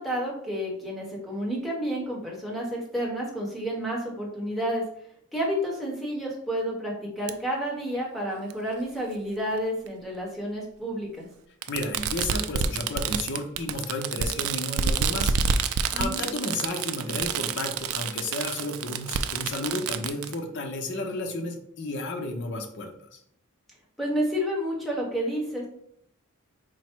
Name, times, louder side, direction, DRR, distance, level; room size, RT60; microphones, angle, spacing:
voice 1, 0.0-4.8 5.3-11.3 15.9-16.2 24.0-25.7, equal, ahead, -4 dB, 1.0 m, -30 dB
Fireworks, 7.3-7.4 8.5-8.6 9.9-10.0 11.6-20.3, right 6 dB, 70° right, 0.3 m, -28 dB
voice 2, 11.7-23.2, left 2 dB, 55° left, 2 dB, 0.7 m, -32 dB
4.6 x 2.1 x 4.4 m, 0.70 s
head